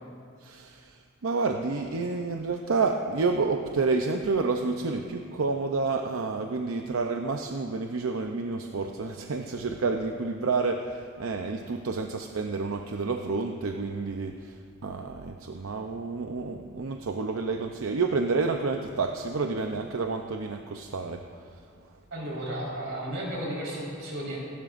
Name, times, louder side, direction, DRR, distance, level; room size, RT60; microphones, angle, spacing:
voice 1, 0.4-21.6, right 4 dB, 85° right, 4 dB, 0.6 m, -29 dB
voice 2, 22.1-24.4, right 1 dB, 65° right, -4 dB, 4.3 m, -33 dB
26.5 x 12.5 x 2.6 m, 2.2 s
head